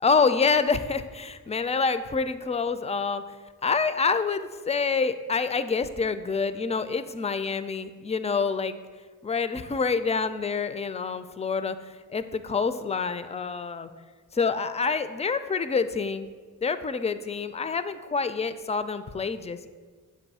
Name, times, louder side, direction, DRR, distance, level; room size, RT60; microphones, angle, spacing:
voice 1, 0.0-3.2 3.6-8.8 9.2-13.9 14.3-16.3 16.6-19.7, left 5 dB, 20° left, 11 dB, 0.3 m, -27 dB
7.0 x 2.6 x 5.4 m, 1.5 s
cardioid pair, 55°, 36 cm